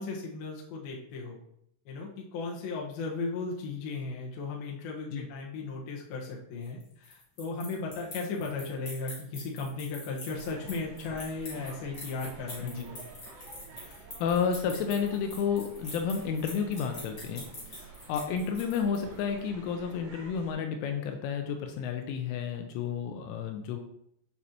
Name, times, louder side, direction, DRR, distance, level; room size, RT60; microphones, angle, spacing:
voice 1, 0.0-1.4 1.9-13.0, left 3 dB, 65° left, -1 dB, 2.5 m, -36 dB
sound 1, 6.6-19.2, left 2 dB, 30° left, 2.3 m, -44 dB
sound 2, 10.3-20.5, right 5 dB, 70° right, 2.2 m, -49 dB
voice 2, 13.9-23.8, left 6 dB, 85° left, 5 dB, 3.1 m, -31 dB
9.4 x 5.4 x 2.9 m, 0.73 s
omnidirectional pair, 5.8 m